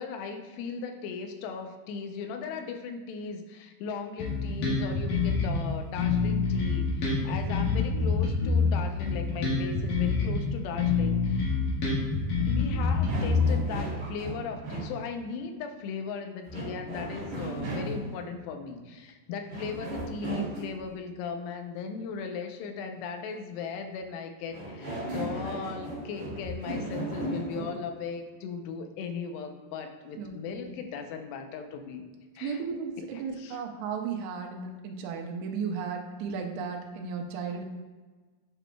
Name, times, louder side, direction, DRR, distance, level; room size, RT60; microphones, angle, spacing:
voice 1, 0.0-11.5 12.5-32.1 32.4-32.6 33.0-33.6, left 5 dB, 90° left, 6 dB, 2.8 m, -37 dB
Bass guitar, 4.2-5.6 6.0-10.4 10.8-13.8, left 4 dB, 60° left, 2.7 m, -26 dB
sound 1, 13.0-14.9 16.5-18.2 19.5-20.8 24.5-27.8, right 1 dB, 50° right, 2.4 m, -35 dB
voice 2, 30.2-30.7 32.4-37.6, right 5 dB, 90° right, 3 dB, 2.9 m, -35 dB
10.0 x 5.1 x 2.2 m, 1.3 s
omnidirectional pair, 4.7 m